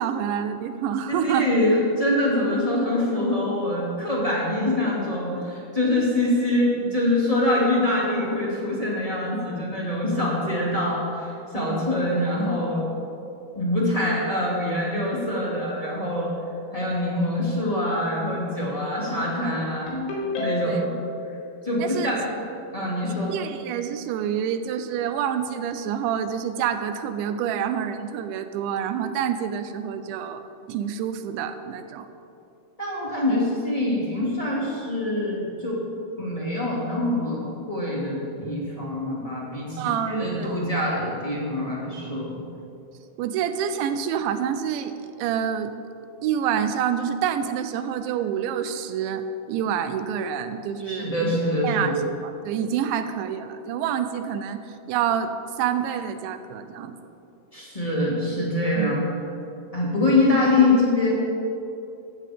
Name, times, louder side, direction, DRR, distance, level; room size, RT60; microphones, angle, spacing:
voice 1, 0.0-1.5 11.6-11.8 20.7-20.8 21.8-22.1 23.3-30.4 30.7-32.1 39.8-40.6 43.2-45.7 46.2-51.3 51.6-54.6 54.9-56.9 58.8-59.0, right 8 dB, 85° right, 9 dB, 3.1 m, -27 dB
voice 2, 1.1-12.8 13.5-16.3 16.7-19.9 20.4-20.9 21.6-22.2 22.7-23.3 32.8-35.8 36.2-42.4 50.8-52.0 57.5-59.0 59.7-61.1, left 1 dB, 15° left, -6 dB, 1.3 m, -24 dB
Ringtone, 19.9-21.0, left 1 dB, 85° left, 5.0 m, -28 dB
15.5 x 14.5 x 3.6 m, 2.7 s
omnidirectional pair, 5.2 m